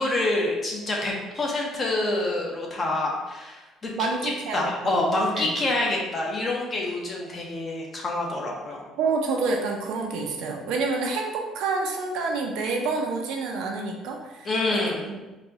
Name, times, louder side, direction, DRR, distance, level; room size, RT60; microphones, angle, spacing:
voice 1, 0.0-3.9 4.2-8.9 14.4-15.1, left 2 dB, 30° left, -2 dB, 0.8 m, -27 dB
voice 2, 3.9-5.0 5.4-5.5 9.0-15.2, right 4 dB, 85° right, 1 dB, 0.6 m, -28 dB
4.2 x 2.2 x 2.7 m, 1.1 s
cardioid pair, 135°, 0 cm